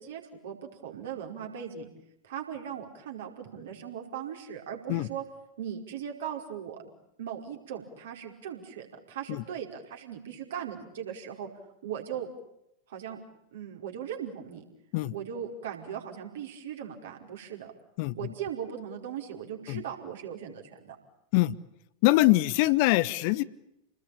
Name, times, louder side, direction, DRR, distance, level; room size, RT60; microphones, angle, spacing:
voice 1, 0.0-1.9 2.2-5.2 5.6-6.8 7.2-11.5 11.8-12.3 12.9-13.2 13.5-14.6 15.1-17.7 18.2-21.0, right 9 dB, 60° right, 2 dB, 5.1 m, -38 dB
voice 2, 22.0-23.4, left 18 dB, 45° left, 16 dB, 1.1 m, -23 dB
30.0 x 20.5 x 8.8 m, 0.81 s
figure-of-eight pair, 90°, 0 cm